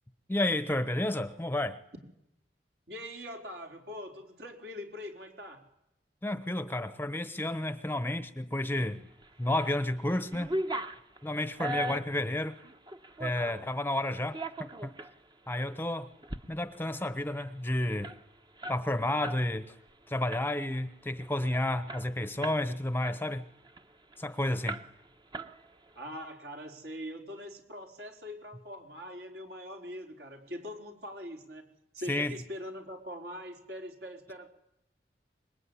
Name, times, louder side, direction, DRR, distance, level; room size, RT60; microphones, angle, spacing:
voice 1, 0.3-1.8 6.2-9.0 9.4-10.5 11.2-12.6 13.2-14.9 15.5-16.1 16.5-18.1 18.7-19.7 20.1-23.4 24.2-24.8 32.1-32.3, left 1 dB, 10° left, 0.9 m, -31 dB
voice 2, 2.9-5.6 25.9-31.7 31.9-34.5, equal, 65° right, 4.5 m, -42 dB
sound 1, 9.2-9.8 10.1-13.7 14.2-15.1 15.6-15.7 16.1-16.4 16.7-16.8 17.1-19.4 19.7-19.9 20.3-20.8 21.2-21.3 21.5-22.7 23.0-24.2 24.7-25.1 25.3-26.0, right 1 dB, 25° right, 1.2 m, -38 dB
25.5 x 22.0 x 10.0 m
head